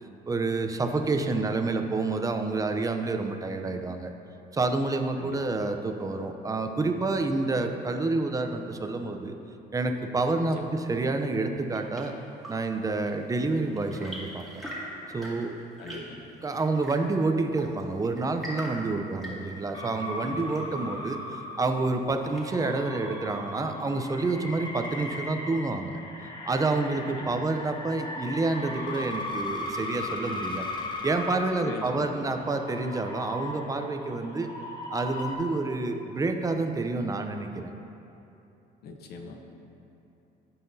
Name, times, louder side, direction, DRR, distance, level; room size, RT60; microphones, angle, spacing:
voice 1, 0.3-4.1 4.5-9.3 9.7-12.1 12.5-14.6 15.1-15.5 15.9-16.0 16.4-26.0 26.5-30.7 31.0-34.5 34.9-37.7, right 3 dB, 20° right, 6 dB, 0.6 m, -28 dB
Chirp tweet / Engine / Tap, 11.3-22.8, equal, ahead, 2.1 m, -44 dB
voice 2, 15.8-16.2 20.2-20.5 27.2-27.4 31.6-32.3 38.8-39.5, left 4 dB, 70° left, 3 dB, 1.0 m, -41 dB
sound 1, 19.7-35.3, left 2 dB, 25° left, 1.0 m, -38 dB
16.0 x 5.7 x 2.7 m, 2.9 s
cardioid pair, 110°, 17 cm